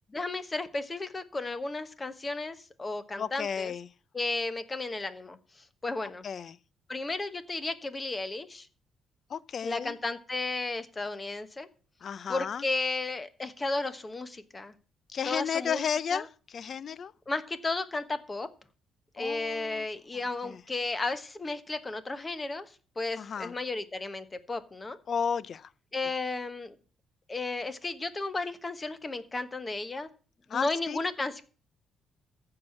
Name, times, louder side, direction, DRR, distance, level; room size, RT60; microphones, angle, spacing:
voice 1, 0.1-3.7 4.1-5.4 5.8-6.3 6.9-8.7 9.6-11.7 12.3-14.7 15.2-15.8 16.1-16.3 17.3-18.5 19.1-22.6 23.0-25.0 25.9-26.8 27.3-30.1 30.5-31.4, left 3 dB, 25° left, 1.2 m, -33 dB
voice 2, 3.1-3.9 6.2-6.6 9.3-10.0 12.0-12.6 15.1-16.3 16.5-17.1 19.2-19.8 20.4-20.6 23.2-23.5 25.1-25.7 30.5-31.0, left 7 dB, 55° left, 0.5 m, -33 dB
14.5 x 4.9 x 7.3 m
cardioid pair, 90°, 0 cm